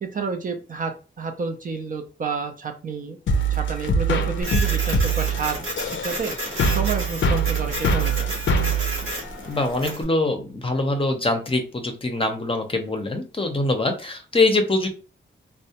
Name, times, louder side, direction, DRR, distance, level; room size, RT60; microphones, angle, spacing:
voice 1, 0.0-3.2 3.5-6.3 6.7-8.3, right 5 dB, 40° right, 5 dB, 0.5 m, -30 dB
sound 1, 3.3-9.9, right 3 dB, 70° left, 0.4 m, -23 dB
Printer, 4.4-10.0, right 1 dB, 90° right, 0.8 m, -32 dB
voice 2, 9.5-14.9, left 2 dB, 25° left, 4 dB, 0.6 m, -23 dB
2.3 x 2.1 x 2.8 m, 0.35 s
cardioid pair, 80°, 20 cm